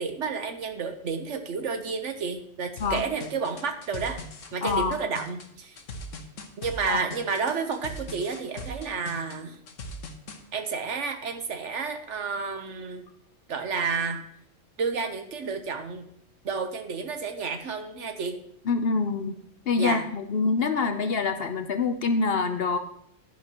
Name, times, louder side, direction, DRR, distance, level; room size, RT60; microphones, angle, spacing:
voice 1, 0.0-4.2 4.5-5.8 6.6-9.6 10.5-13.0 13.5-14.2 14.8-16.1 16.4-18.4 19.8-20.0, right 5 dB, 65° right, 6 dB, 1.3 m, -31 dB
sound 1, 2.8-10.4, equal, 70° left, 1.4 m, -39 dB
voice 2, 4.6-5.0 6.9-7.0 18.7-19.4 19.7-22.8, left 4 dB, 55° left, 7 dB, 0.9 m, -25 dB
11.5 x 10.5 x 3.0 m, 0.68 s
omnidirectional pair, 1.3 m